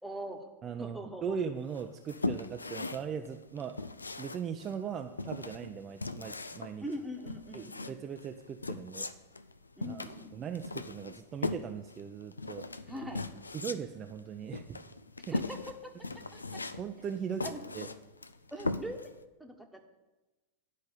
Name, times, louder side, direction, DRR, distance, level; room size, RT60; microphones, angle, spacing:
voice 1, 0.0-0.5 0.8-1.4 6.8-7.9 9.8-10.3 12.9-13.2 15.3-16.6 17.4-17.6 18.5-19.1 19.4-19.9, equal, 5° right, 3 dB, 1.3 m, -42 dB
voice 2, 0.6-3.8 4.2-6.8 7.5-9.1 9.9-10.0 10.3-12.7 13.5-14.8 15.3-15.4 16.8-17.5 17.7-17.9, right 7 dB, 25° right, 5 dB, 0.5 m, -39 dB
sound 1, 1.7-19.2, left 3 dB, 80° left, 0.5 m, -39 dB
10.0 x 5.2 x 8.3 m, 1.1 s
figure-of-eight pair, 90°, 0 cm